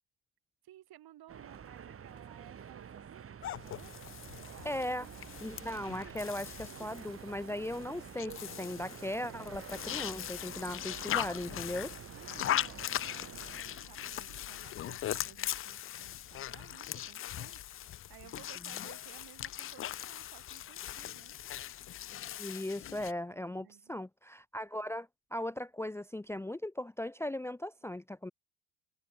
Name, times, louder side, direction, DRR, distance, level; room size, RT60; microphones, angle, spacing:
voice 1, 0.6-4.7 11.0-11.6 12.1-21.4 23.3-23.9, right 13 dB, 55° right, 3.2 m, -57 dB
sound 1, 1.3-13.6, right 7 dB, 30° right, 1.7 m, -49 dB
sound 2, 3.4-23.1, left 12 dB, 30° left, 0.5 m, -40 dB
sound 3, 4.5-15.7, right 31 dB, 75° right, 7.5 m, -58 dB
voice 2, 4.6-5.1 5.4-11.9 22.4-28.3, left 1 dB, 5° left, 0.8 m, -38 dB
open air
supercardioid pair, 90°, 45 cm